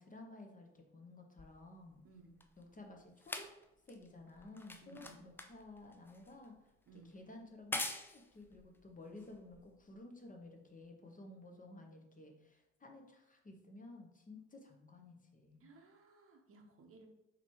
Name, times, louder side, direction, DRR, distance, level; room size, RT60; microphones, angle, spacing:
voice 1, 0.0-2.0 2.6-3.5 3.9-6.5 6.9-15.7, left 2 dB, 25° left, 2 dB, 0.8 m, -54 dB
sound 1, 1.4-10.0 10.8-10.9, left 2 dB, 5° left, 0.3 m, -47 dB
voice 2, 2.0-2.4 4.8-5.2 6.9-7.1 15.6-17.1, right 3 dB, 40° right, 2 dB, 0.9 m, -60 dB
3.9 x 3.1 x 3.1 m, 0.90 s
hypercardioid pair, 50°, 35 cm